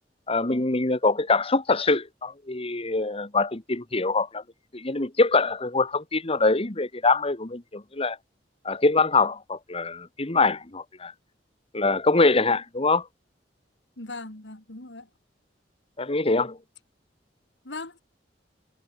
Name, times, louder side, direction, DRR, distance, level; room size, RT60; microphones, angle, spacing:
voice 1, 0.3-4.4 4.7-8.2 8.6-11.1 11.7-13.1 16.0-16.6, left 3 dB, 35° left, 1.7 m, -24 dB
voice 2, 14.0-15.1 17.6-18.0, left 2 dB, 85° left, 3.2 m, -39 dB
head